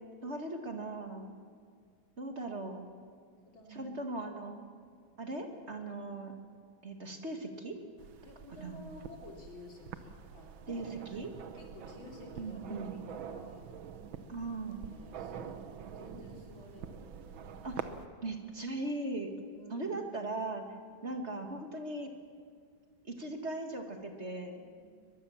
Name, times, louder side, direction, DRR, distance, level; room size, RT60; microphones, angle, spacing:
voice 1, 0.2-1.3 2.2-2.8 3.7-4.6 5.2-6.3 6.8-7.8 8.6-8.8 10.7-11.3 12.4-12.9 14.3-14.8 17.6-17.9 18.2-19.3 19.7-20.7 21.0-22.1 23.0-24.6, right 2 dB, 35° right, 4 dB, 2.0 m, -39 dB
voice 2, 3.4-3.9 4.9-5.0 8.2-13.7 14.6-15.6 15.9-17.0 19.5-19.9 21.0-21.2 24.8-24.9, left 2 dB, 85° left, 0 dB, 4.3 m, -52 dB
sound 1, 8.0-18.1, right 7 dB, 85° right, 1.8 m, -46 dB
22.0 x 21.5 x 7.2 m, 2.1 s
omnidirectional pair, 2.1 m